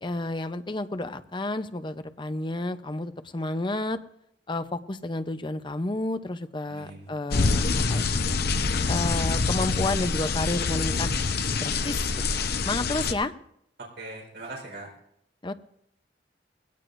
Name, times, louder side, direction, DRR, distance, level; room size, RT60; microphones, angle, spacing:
voice 1, 0.0-4.0 4.5-8.2 8.9-11.1 11.6-12.0 12.3-13.3 15.4-15.5, left 2 dB, 25° left, 10 dB, 0.7 m, -31 dB
voice 2, 6.7-7.1 12.9-13.1 13.8-14.9, right 2 dB, 65° right, -1 dB, 4.3 m, -40 dB
sound 1, 7.3-13.1, left 4 dB, 60° left, 0.8 m, -26 dB
21.0 x 17.0 x 2.6 m, 0.74 s
head